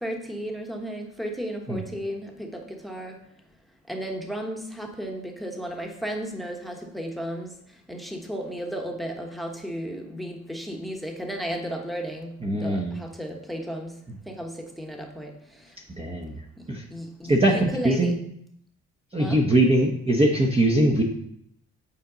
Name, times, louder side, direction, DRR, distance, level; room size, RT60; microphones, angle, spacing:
voice 1, 0.0-3.1 3.9-7.5 7.9-13.9 14.3-15.3 16.9-18.1 19.2-19.4, equal, ahead, 2 dB, 1.1 m, -34 dB
voice 2, 12.4-13.0 16.0-16.3 16.7-16.8 17.3-17.5 17.8-18.1 19.1-21.0, right 1 dB, 20° right, 0 dB, 0.9 m, -21 dB
8.7 x 4.4 x 3.9 m, 0.73 s
cardioid pair, 90°, 30 cm